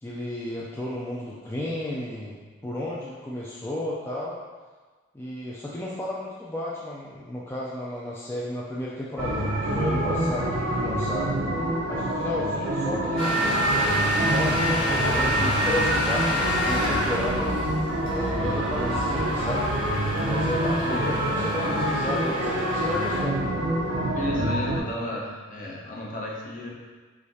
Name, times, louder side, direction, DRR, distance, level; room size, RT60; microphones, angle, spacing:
voice 1, 0.0-2.4 2.6-4.4 5.1-11.3 11.9-13.4 14.2-17.5 18.1-19.7 20.3-23.4, left 1 dB, 10° left, -6 dB, 0.4 m, -33 dB
sound 1, 9.2-24.8, right 1 dB, 80° right, 0.6 m, -26 dB
sound 2, 13.2-23.2, equal, 80° left, 1.5 m, -28 dB
voice 2, 20.9-21.4 24.1-26.7, left 1 dB, 45° left, -3 dB, 0.8 m, -33 dB
5.1 x 3.6 x 2.7 m, 1.4 s
head